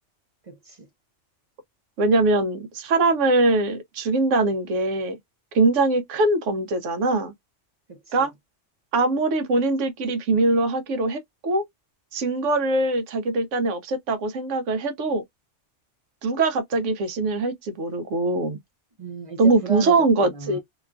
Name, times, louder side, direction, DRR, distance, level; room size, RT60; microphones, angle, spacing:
voice 1, 0.4-0.9 7.9-8.3 19.0-20.6, right 4 dB, 45° right, 0.4 m, -36 dB
voice 2, 2.0-5.2 5.5-7.3 8.1-8.3 8.9-11.6 12.1-15.2 16.2-18.6 19.4-20.6, right 2 dB, 85° right, 1.0 m, -22 dB
2.9 x 2.3 x 2.4 m
omnidirectional pair, 1.2 m